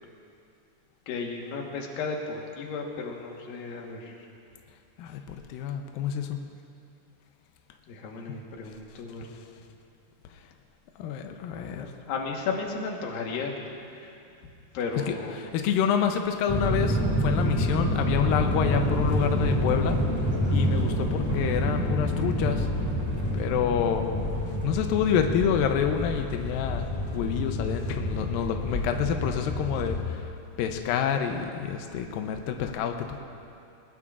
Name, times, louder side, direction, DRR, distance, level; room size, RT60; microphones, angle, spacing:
voice 1, 1.1-4.1 7.9-9.4 11.7-13.5 13.9-14.1 14.7-15.3, left 4 dB, 65° left, 1 dB, 2.7 m, -34 dB
voice 2, 5.0-6.4 11.0-11.9 15.1-20.0 20.5-22.7 23.3-24.3 24.6-30.3 30.6-33.2, left 8 dB, 85° left, 5 dB, 2.0 m, -28 dB
sound 1, 16.5-30.0, equal, 15° left, 0.6 m, -28 dB
20.5 x 20.0 x 2.5 m, 2.6 s
omnidirectional pair, 4.9 m